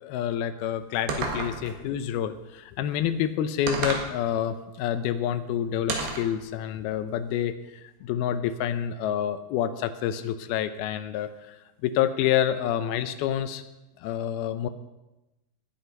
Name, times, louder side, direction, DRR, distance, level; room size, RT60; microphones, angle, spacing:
voice 1, 0.0-7.5 8.0-11.6 11.8-13.6 14.0-14.7, left 10 dB, 80° left, 11 dB, 2.5 m, -28 dB
sound 1, 1.1-1.8 3.7-4.1 5.9-6.3, right 4 dB, 70° right, 3.6 m, -30 dB
19.5 x 8.6 x 5.3 m, 1.0 s
omnidirectional pair, 4.7 m